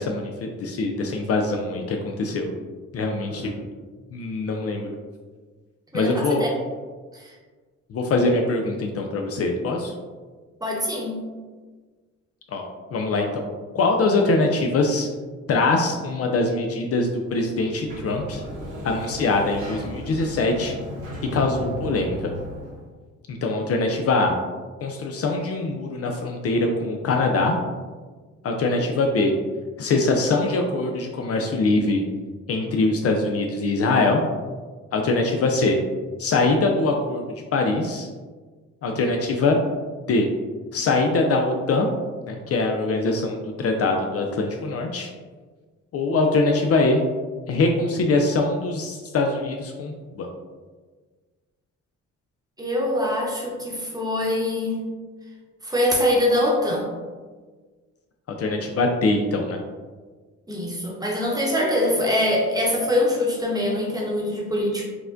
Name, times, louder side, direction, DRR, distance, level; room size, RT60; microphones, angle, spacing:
voice 1, 0.0-2.5 2.9-3.5 4.1-4.9 5.9-6.5 7.9-9.9 12.5-12.6 12.9-13.4 13.7-15.1 15.5-18.4 18.8-20.7 21.3-22.3 23.3-24.3 24.8-27.6 28.4-29.3 29.8-32.0 32.5-34.2 34.9-35.8 36.2-37.2 37.5-38.1 38.8-39.6 40.1-40.3 40.7-41.9 42.3-45.1 45.9-47.0 47.5-50.3 58.4-59.6, left 3 dB, 50° left, 3 dB, 0.4 m, -23 dB
voice 2, 5.9-6.5 7.1-7.3 10.6-11.3 52.6-54.8 55.6-56.9 60.5-64.8, left 1 dB, 10° right, -3 dB, 0.9 m, -24 dB
Sliding door, 17.5-22.8, equal, 75° right, 1.3 m, -35 dB
4.7 x 2.1 x 2.5 m, 1.4 s
cardioid pair, 90°, 30 cm